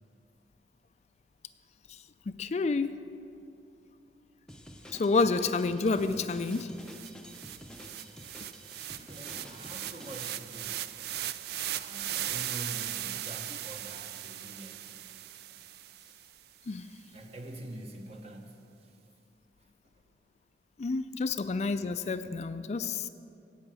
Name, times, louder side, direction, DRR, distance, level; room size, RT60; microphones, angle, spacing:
voice 1, 1.9-2.9 4.9-6.7 16.7-16.9 20.8-23.1, left 4 dB, 40° left, 10 dB, 0.4 m, -29 dB
Drum kit, 4.5-10.4, equal, 5° left, 0.7 m, -49 dB
sound 1, 5.6-5.7 6.0-16.3, right 12 dB, 60° right, 0.4 m, -38 dB
voice 2, 9.1-10.9 11.6-14.9 17.1-19.0, right 1 dB, 35° right, 4 dB, 1.2 m, -45 dB
16.5 x 5.7 x 7.6 m, 2.6 s
head